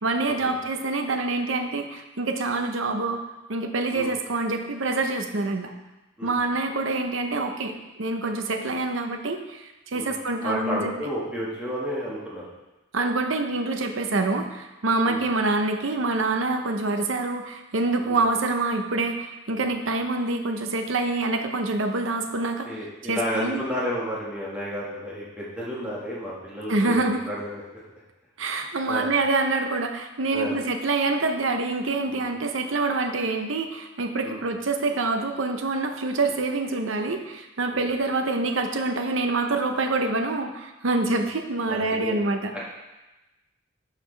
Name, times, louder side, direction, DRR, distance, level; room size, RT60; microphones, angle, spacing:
voice 1, 0.0-3.2 3.5-5.7 6.2-10.9 12.9-23.6 26.7-27.2 28.4-42.5, right 3 dB, 75° right, 5 dB, 0.8 m, -26 dB
voice 2, 10.4-12.4 15.1-15.2 18.0-18.2 19.5-19.6 22.6-27.6 28.9-29.1 30.3-30.6 32.1-32.2 34.2-34.4 41.7-42.2 42.5-42.7, equal, 5° right, -7 dB, 1.7 m, -32 dB
11.0 x 5.0 x 3.3 m, 1.0 s
head